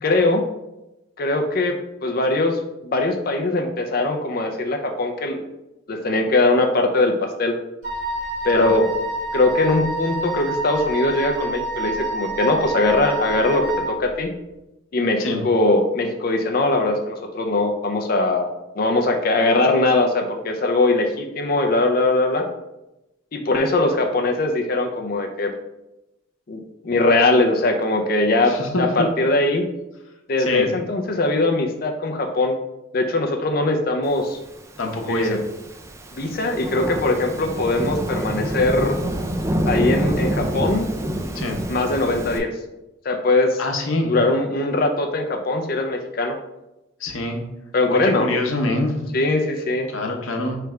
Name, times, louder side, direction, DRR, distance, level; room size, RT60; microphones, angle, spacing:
voice 1, 0.0-0.4 1.2-1.8 2.0-5.4 5.9-7.5 8.4-8.8 9.3-14.3 14.9-22.4 23.3-25.5 26.5-29.6 30.3-32.6 32.9-34.4 35.1-35.4 36.2-39.0 39.7-40.9 41.7-42.5 43.0-43.6 44.1-46.4 47.7-48.3 49.1-49.9, left 2 dB, 50° left, 4 dB, 0.5 m, -21 dB
Wind instrument woodwind instrument, 7.8-13.9, right 2 dB, 60° right, 1.6 m, -28 dB
voice 2, 28.5-29.1 30.4-30.7 34.8-35.4 41.3-41.6 43.6-44.1 47.0-47.4 47.9-49.0 49.9-50.6, left 2 dB, 85° left, 3 dB, 0.8 m, -25 dB
Thunderstorm / Rain, 34.7-42.4, right 1 dB, 15° right, 0.3 m, -27 dB
3.3 x 3.2 x 4.8 m, 0.95 s
head